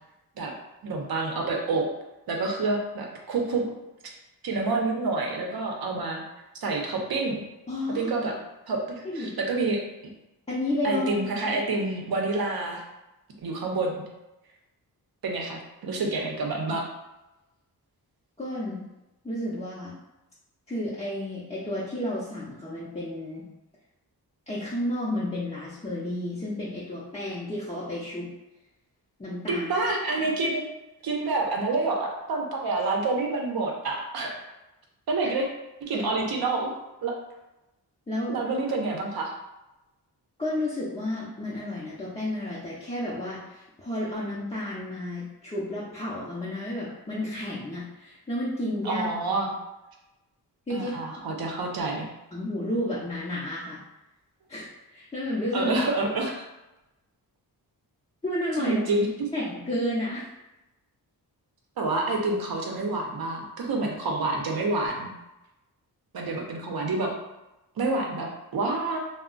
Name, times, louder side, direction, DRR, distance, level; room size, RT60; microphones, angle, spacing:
voice 1, 0.8-1.9 2.3-3.7 4.4-6.2 6.6-7.4 7.9-8.4 8.7-9.8 10.8-12.8 13.4-14.0 15.2-16.9 29.5-30.6 31.0-34.4 35.1-35.5 35.8-36.7 37.0-37.2 38.3-39.3 48.8-49.5 50.7-52.1 55.5-56.4 58.6-59.1 61.8-65.1 66.1-67.1 67.8-69.0, right 3 dB, 60° right, 1 dB, 0.7 m, -28 dB
voice 2, 7.7-8.1 9.0-9.3 10.5-11.1 11.3-11.6 18.4-18.8 19.2-19.9 20.7-23.5 24.5-28.3 29.2-29.7 35.9-36.1 38.1-38.4 40.4-49.1 50.7-50.9 52.3-53.8 54.5-55.8 58.2-58.8 59.3-60.3, left 1 dB, 15° left, -9 dB, 0.6 m, -31 dB
2.3 x 2.1 x 3.7 m, 0.96 s
wide cardioid pair, 100°, 41 cm